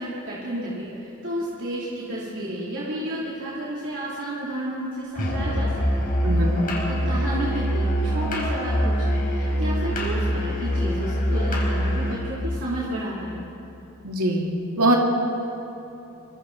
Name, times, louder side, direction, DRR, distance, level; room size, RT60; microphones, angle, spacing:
voice 1, 0.0-6.1 6.9-13.4, equal, 60° right, -7 dB, 3.0 m, -31 dB
Musical instrument, 5.2-12.3, equal, 40° left, 4.6 m, -24 dB
voice 2, 6.2-6.6 14.0-15.0, right 1 dB, 80° right, 0 dB, 2.2 m, -22 dB
27.5 x 23.5 x 4.0 m, 2.9 s
head